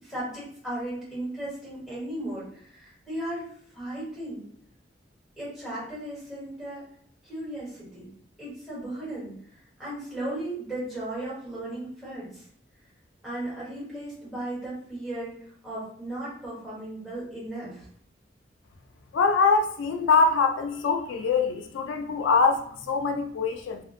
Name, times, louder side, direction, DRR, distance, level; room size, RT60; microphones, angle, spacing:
voice 1, 0.0-3.5 3.7-4.5 5.4-6.8 7.2-8.1 8.4-9.3 9.8-12.4 13.2-15.4 15.6-17.8, right 1 dB, ahead, -9 dB, 1.4 m, -36 dB
voice 2, 19.1-23.8, left 4 dB, 85° left, 5 dB, 0.3 m, -23 dB
2.5 x 2.5 x 2.5 m, 0.63 s
head